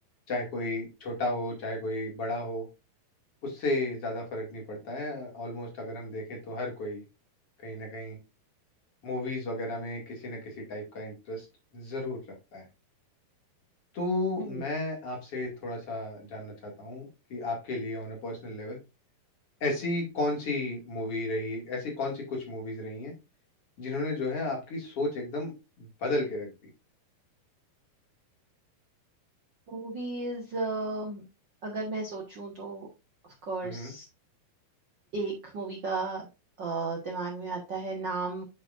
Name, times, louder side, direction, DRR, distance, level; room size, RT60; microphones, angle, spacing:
voice 1, 0.3-2.7 3.4-7.0 7.6-8.2 9.0-11.5 11.7-12.2 12.5-12.6 13.9-18.8 19.6-23.1 23.8-25.5 25.8-26.5 33.6-33.9, left 2 dB, 40° left, 0 dB, 2.8 m, -33 dB
voice 2, 29.7-31.2 31.6-32.9 33.5-34.0 35.1-36.3 36.6-38.4, right 3 dB, 80° right, -1 dB, 1.0 m, -34 dB
9.5 x 5.5 x 2.5 m, 0.27 s
omnidirectional pair, 4.4 m